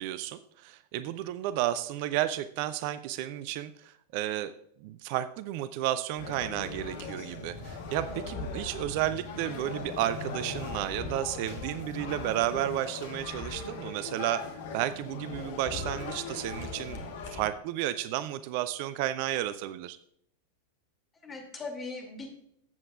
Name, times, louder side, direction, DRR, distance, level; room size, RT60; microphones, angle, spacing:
voice 1, 0.0-4.5 4.8-14.5 14.7-20.0, right 13 dB, 45° right, 14 dB, 0.4 m, -32 dB
sound 1, 6.2-17.5, left 4 dB, 55° left, 1.3 m, -39 dB
voice 2, 8.1-8.5 21.1-22.3, left 3 dB, 20° left, 2 dB, 2.5 m, -40 dB
14.5 x 7.7 x 2.4 m, 0.73 s
figure-of-eight pair, 90°, 0 cm